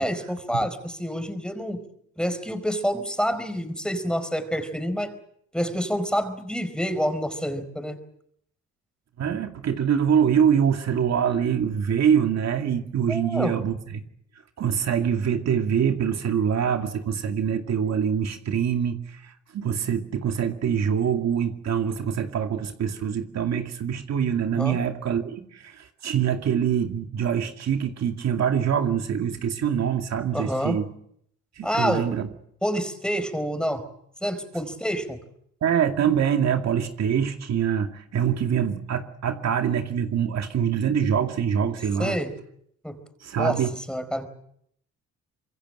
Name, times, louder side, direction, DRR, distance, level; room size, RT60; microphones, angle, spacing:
voice 1, 0.0-1.8 2.2-5.1 5.5-8.0 13.1-13.7 24.5-24.8 30.3-30.8 31.6-32.1 32.6-33.9 34.2-35.2 42.0-42.4 42.8-43.0 43.4-44.3, equal, 5° left, 10 dB, 4.6 m, -28 dB
voice 2, 9.2-14.0 14.6-30.9 31.6-32.3 35.6-42.2 43.2-43.7, right 8 dB, 60° right, 5 dB, 2.4 m, -24 dB
26.0 x 23.0 x 7.9 m, 0.70 s
cardioid pair, 90°, 30 cm